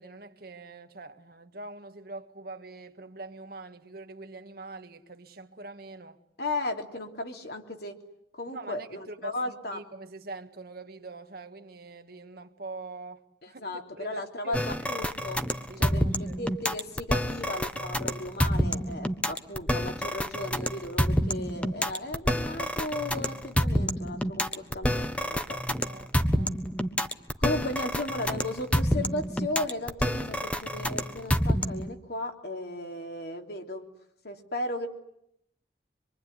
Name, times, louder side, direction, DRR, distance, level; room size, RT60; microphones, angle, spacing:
voice 1, 0.0-6.2 8.5-13.6 14.0-14.9 15.7-16.4 25.8-26.6, right 3 dB, 55° right, 1.7 m, -44 dB
voice 2, 6.4-8.0 8.3-9.8 13.6-15.4 15.8-25.6 27.4-33.9 34.2-34.9, left 2 dB, 60° left, 3.3 m, -35 dB
sound 1, 14.5-31.9, equal, 5° left, 1.3 m, -28 dB
26.0 x 23.5 x 9.8 m
head